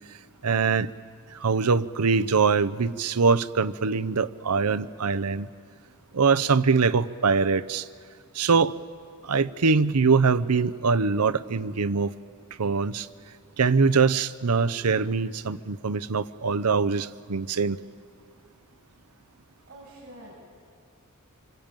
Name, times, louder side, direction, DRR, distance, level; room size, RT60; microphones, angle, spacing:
voice 1, 0.4-0.9 1.3-5.5 6.1-7.9 8.3-8.7 9.2-12.1 12.6-13.1 13.6-17.8, right 5 dB, 85° right, 14 dB, 0.8 m, -23 dB
voice 2, 19.7-20.3, right 1 dB, 45° right, -5 dB, 6.8 m, -46 dB
26.0 x 25.0 x 9.0 m, 2.1 s
head